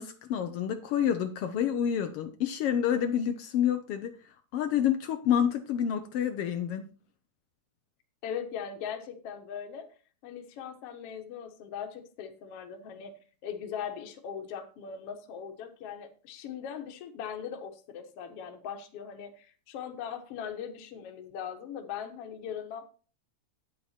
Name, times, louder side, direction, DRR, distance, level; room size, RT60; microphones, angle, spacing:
voice 1, 0.0-4.1 4.5-6.9, left 9 dB, 90° left, 7 dB, 1.2 m, -28 dB
voice 2, 8.2-9.9 10.2-13.1 13.4-22.9, left 8 dB, 60° left, 5 dB, 1.8 m, -40 dB
9.4 x 8.6 x 4.3 m, 0.37 s
omnidirectional pair, 3.7 m